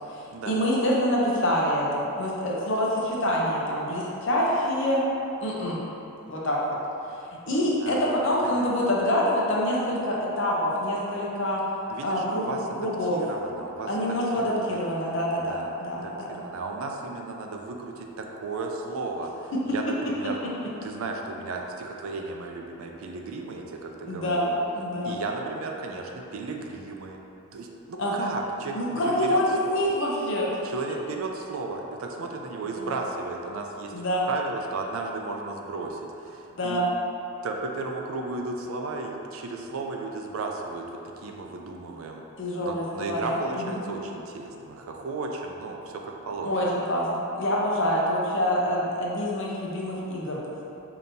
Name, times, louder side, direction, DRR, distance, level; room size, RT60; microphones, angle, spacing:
voice 1, 0.1-5.0 5.4-5.8 6.3-6.8 7.5-11.6 12.0-12.5 12.8-13.2 13.9-16.4 19.5-19.6 24.1-25.2 28.0-28.3 28.7-30.6 32.7-32.9 33.9-34.3 36.5-36.9 42.4-43.8 46.4-50.4, equal, 60° left, -4 dB, 0.7 m, -26 dB
voice 2, 7.8-8.7 11.9-14.8 15.4-20.4 20.8-24.6 25.0-27.2 27.5-29.9 30.6-33.9 34.3-36.8 37.4-40.8 41.2-42.2 42.6-46.5, right 3 dB, 70° right, 2 dB, 0.4 m, -35 dB
5.1 x 2.8 x 2.7 m, 2.9 s
head